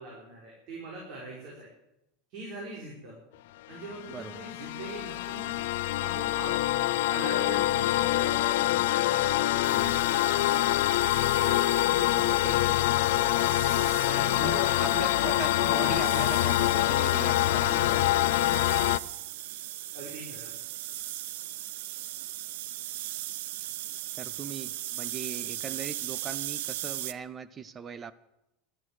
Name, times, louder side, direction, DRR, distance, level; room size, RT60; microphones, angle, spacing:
voice 1, 0.0-1.7 2.3-3.1 3.7-5.6 6.0-6.6 7.1-11.0 11.4-13.4 14.0-16.2 19.9-20.5, right 2 dB, 50° right, -3 dB, 5.0 m, -42 dB
sound 1, 3.8-19.0, left 16 dB, 80° left, 0.5 m, -25 dB
voice 2, 4.1-4.4 9.7-10.0 12.0-12.4 14.4-18.6 24.1-28.1, right 6 dB, 25° right, 17 dB, 0.7 m, -40 dB
sound 2, 9.6-27.1, right 15 dB, 75° right, 0.6 m, -39 dB
12.5 x 11.0 x 8.3 m, 0.87 s
supercardioid pair, 150°, 0 cm